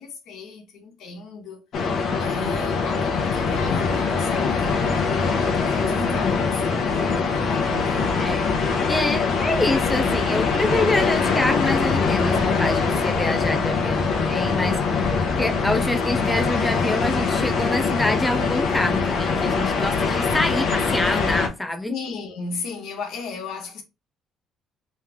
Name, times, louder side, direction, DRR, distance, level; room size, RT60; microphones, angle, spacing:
voice 1, 0.0-1.7 2.2-8.4 21.9-23.8, left 4 dB, 65° left, 1.3 m, -36 dB
sound 1, 1.7-21.5, left 5 dB, 50° left, 0.9 m, -23 dB
voice 2, 5.9-6.5 8.2-8.5 8.9-22.0, left 1 dB, 5° left, 0.5 m, -26 dB
3.2 x 3.2 x 3.5 m
cardioid pair, 155°, 0 cm